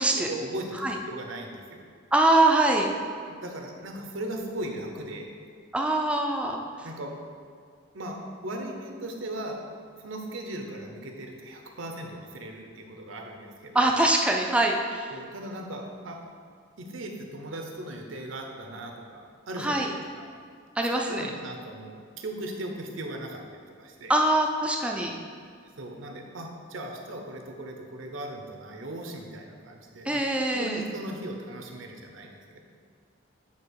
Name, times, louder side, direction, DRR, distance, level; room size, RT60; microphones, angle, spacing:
voice 1, 0.0-1.9 3.3-5.3 6.8-7.2 7.9-9.6 10.0-13.9 15.1-16.2 16.8-20.2 20.9-24.1 25.8-30.2 30.5-32.6, right 1 dB, 85° right, 2 dB, 0.8 m, -38 dB
voice 2, 2.1-2.9 5.7-6.6 13.7-15.1 19.6-19.9 20.8-21.2 24.1-25.1 30.1-30.8, right 2 dB, 5° right, 1 dB, 0.4 m, -23 dB
8.1 x 2.9 x 4.6 m, 2.2 s
head